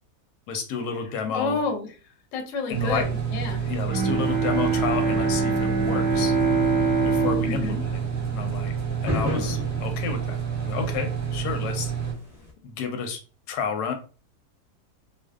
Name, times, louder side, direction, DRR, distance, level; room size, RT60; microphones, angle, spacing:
voice 1, 0.5-1.6 2.7-3.1 3.6-6.3 7.0-7.9 8.3-8.7 9.0-11.9 12.6-13.2 13.5-13.9, left 5 dB, 90° left, 6 dB, 1.2 m, -31 dB
voice 2, 1.3-1.9 2.3-3.6 7.4-7.8, left 4 dB, 65° left, 3 dB, 0.8 m, -29 dB
sound 1, 2.7-12.1, right 7 dB, 15° right, 0.7 m, -29 dB
sound 2, 2.8-12.5, left 1 dB, 35° left, 0.6 m, -38 dB
Bowed string instrument, 3.9-9.1, right 4 dB, 65° right, 0.4 m, -25 dB
2.5 x 2.3 x 2.3 m, 0.36 s
omnidirectional pair, 1.7 m